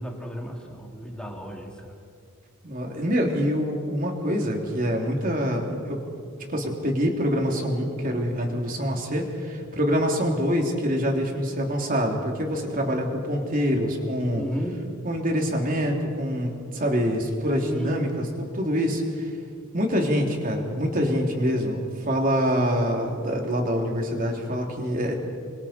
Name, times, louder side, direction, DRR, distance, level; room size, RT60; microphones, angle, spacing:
voice 1, 0.0-1.9 14.4-14.8 17.6-18.0, equal, 5° left, -1 dB, 2.9 m, -33 dB
voice 2, 2.6-6.0 6.5-14.4 15.0-19.3 19.7-25.1, equal, 40° right, 1 dB, 3.2 m, -25 dB
28.0 x 24.5 x 4.5 m, 2.3 s
head